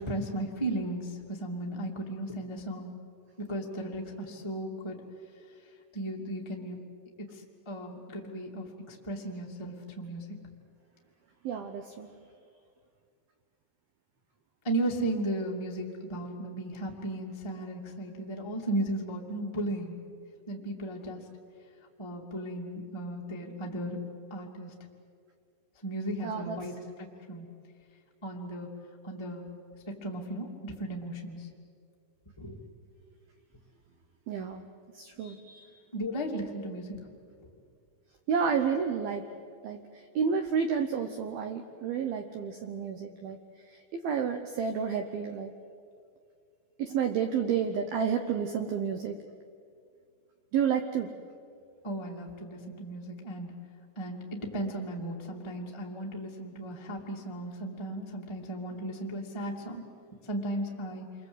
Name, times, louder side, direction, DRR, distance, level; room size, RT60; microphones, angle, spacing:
voice 1, 0.0-2.9 3.4-5.0 5.9-6.8 7.2-10.2 14.6-20.0 20.5-21.2 22.0-24.0 24.3-24.7 25.8-27.5 28.2-28.7 29.0-29.5 30.0-31.5 32.4-32.6 35.9-37.0 51.8-53.5 53.9-59.8 60.3-61.1, right 1 dB, 25° left, -2 dB, 0.6 m, -35 dB
voice 2, 11.4-12.1 26.2-26.6 34.3-34.7 34.9-35.7 38.3-39.2 39.6-39.8 40.2-43.4 44.0-45.5 46.8-49.2 50.5-51.1, right 7 dB, 90° right, 6 dB, 2.1 m, -30 dB
28.5 x 23.5 x 8.1 m, 2.3 s
omnidirectional pair, 5.8 m